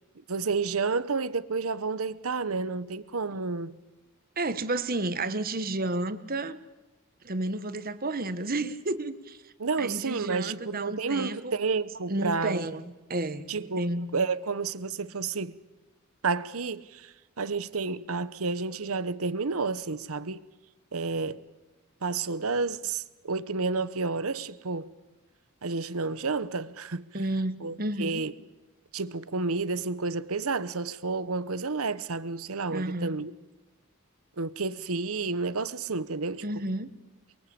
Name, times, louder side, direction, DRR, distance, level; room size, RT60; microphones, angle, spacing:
voice 1, 0.3-3.8 9.6-12.6 13.5-15.6 16.2-20.4 20.9-21.4 22.0-24.9 25.6-27.1 27.6-28.3 28.9-33.3 34.4-36.4, right 4 dB, 75° right, 1.0 m, -30 dB
voice 2, 4.4-6.6 7.2-9.4 9.8-11.5 12.1-12.8 13.1-13.4 13.8-14.1 27.1-28.2 32.7-33.2 36.4-36.9, right 2 dB, 40° right, 1.4 m, -31 dB
28.5 x 22.0 x 8.7 m
head